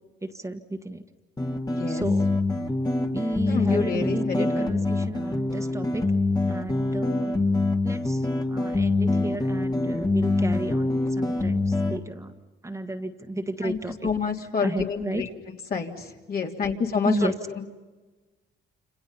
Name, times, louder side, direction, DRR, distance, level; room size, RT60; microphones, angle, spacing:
voice 1, 0.2-1.0 1.9-2.3 3.1-6.0 6.5-7.3 7.8-12.3 12.6-14.3 14.6-15.2 17.0-17.5, right 1 dB, 15° right, 5 dB, 1.6 m, -32 dB
sound 1, 1.4-12.0, left 2 dB, 20° left, 1.9 m, -25 dB
voice 2, 3.5-4.7 13.6-15.3 15.7-17.6, left 5 dB, 50° left, 1 dB, 3.2 m, -28 dB
29.0 x 27.5 x 5.7 m, 1.2 s
cardioid pair, 90°, 20 cm